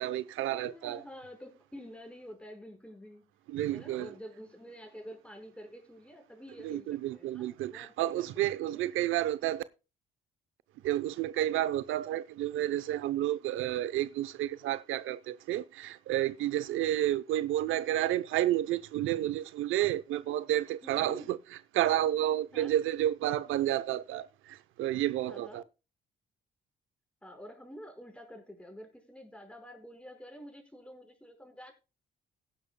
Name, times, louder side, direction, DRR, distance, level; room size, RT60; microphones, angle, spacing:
voice 1, 0.0-1.0 3.5-4.1 6.6-9.6 10.8-21.4 21.7-25.6, right 13 dB, 90° right, 0.7 m, -31 dB
voice 2, 0.5-3.3 3.7-8.8 20.8-21.3 22.5-22.7 25.3-25.6 27.2-31.7, equal, 5° left, 5.0 m, -48 dB
16.5 x 10.5 x 2.2 m
cardioid pair, 90°, 20 cm